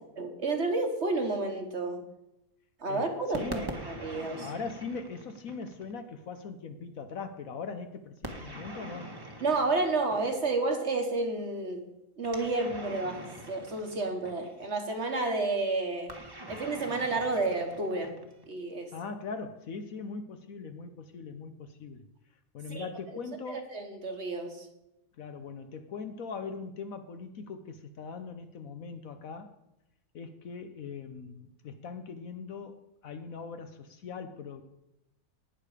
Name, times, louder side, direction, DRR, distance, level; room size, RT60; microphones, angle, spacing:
voice 1, 0.2-2.0 2.8-4.5 9.4-11.9 12.2-16.1 16.5-18.2 18.5-18.9 22.7-22.9 23.5-24.7, right 3 dB, 45° right, 5 dB, 1.6 m, -31 dB
voice 2, 3.3-3.6 4.3-9.1 18.9-22.0 22.5-23.7 25.2-29.5 30.1-34.6, left 5 dB, 60° left, 8 dB, 1.1 m, -40 dB
sound 1, 3.3-6.0 8.2-10.6 12.2-14.7 16.1-18.5, right 1 dB, 15° right, 1.2 m, -43 dB
18.5 x 6.6 x 5.0 m, 0.90 s
omnidirectional pair, 1.8 m